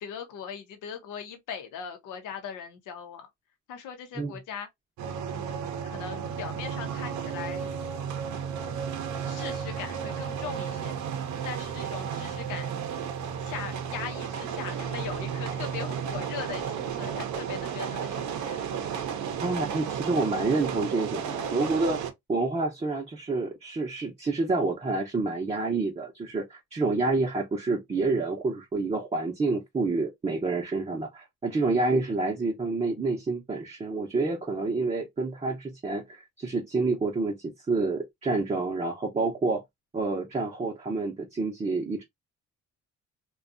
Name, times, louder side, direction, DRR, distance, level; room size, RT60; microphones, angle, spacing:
voice 1, 0.0-3.3 3.7-4.7 5.3-7.7 9.3-10.9 11.4-12.8 13.4-18.6, left 7 dB, 85° left, 0.7 m, -40 dB
sound 1, 5.0-22.1, right 7 dB, 70° right, 0.6 m, -33 dB
voice 2, 19.4-22.0 22.3-39.6 39.9-42.0, right 3 dB, 20° right, 0.6 m, -28 dB
2.5 x 2.2 x 2.4 m
cardioid pair, 90°, 30 cm